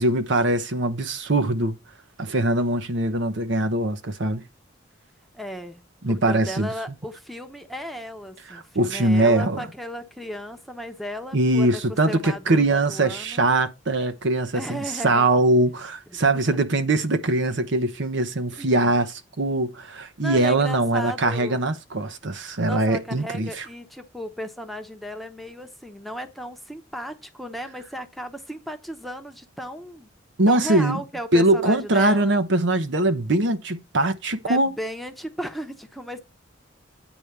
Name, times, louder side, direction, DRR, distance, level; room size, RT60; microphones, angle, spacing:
voice 1, 0.0-1.8 2.2-4.4 6.0-6.7 8.5-9.7 11.3-23.6 30.4-31.0 31.3-34.7, right 2 dB, 65° right, 0.9 m, -22 dB
voice 2, 5.3-5.8 6.1-13.4 14.5-15.3 16.1-16.4 18.6-18.9 20.2-21.6 22.6-30.1 30.5-32.3 34.4-36.2, equal, ahead, 0.8 m, -35 dB
9.1 x 3.4 x 6.6 m
head